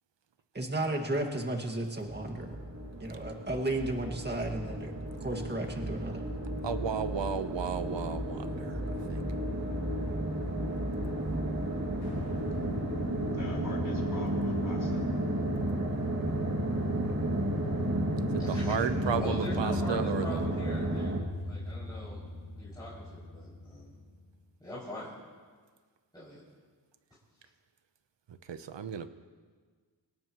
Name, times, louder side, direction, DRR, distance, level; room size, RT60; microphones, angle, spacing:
voice 1, 0.5-2.6 3.0-4.9 5.2-6.3, right 2 dB, 25° right, 2 dB, 2.0 m, -33 dB
sound 1, 2.0-21.2, right 1 dB, 40° right, 2.6 m, -33 dB
voice 2, 6.6-8.8 9.1-9.2 18.3-20.5 28.5-29.1, right 7 dB, 75° right, 10 dB, 1.0 m, -33 dB
sound 2, 12.0-24.2, left 2 dB, 65° left, 5.7 m, -37 dB
voice 3, 13.3-15.1, left 3 dB, 45° left, -2 dB, 4.8 m, -46 dB
voice 4, 18.4-18.9 19.1-21.1 21.4-22.2 22.6-23.9 24.6-25.1 26.1-26.4, left 1 dB, 10° left, -11 dB, 6.6 m, -42 dB
27.0 x 17.0 x 3.1 m, 1.5 s
wide cardioid pair, 85°, 44 cm